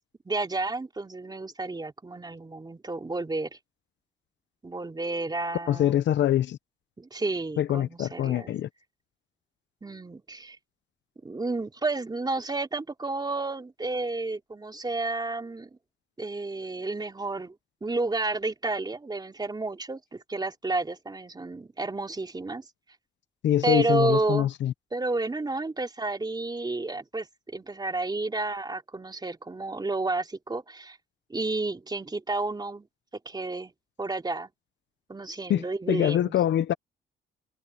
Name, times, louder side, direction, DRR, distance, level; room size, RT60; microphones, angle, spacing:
voice 1, 0.2-3.5 4.6-6.0 7.0-8.5 9.8-10.6 11.2-15.7 16.2-17.5 17.8-22.6 23.6-24.5 24.9-31.0 31.3-32.9 33.2-33.7 34.0-34.5 35.1-36.4, right 3 dB, 20° right, 3.3 m, -31 dB
voice 2, 5.7-6.6 7.6-8.7 23.4-24.7 35.5-36.7, left 11 dB, 65° left, 0.8 m, -24 dB
cardioid pair, 90°, 20 cm